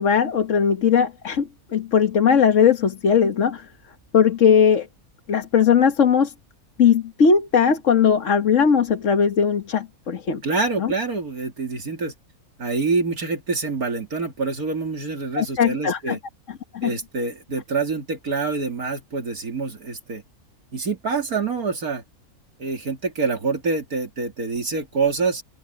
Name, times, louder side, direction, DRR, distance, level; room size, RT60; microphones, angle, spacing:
voice 1, 0.0-3.6 4.1-4.9 5.3-6.3 6.8-10.4 10.8-10.9 15.3-16.2 16.7-16.9, left 7 dB, 60° left, 1.7 m, -19 dB
voice 2, 10.4-12.1 12.6-16.2 16.8-20.2 20.7-22.0 22.6-25.4, right 4 dB, 90° right, 3.3 m, -26 dB
omnidirectional pair, 1.5 m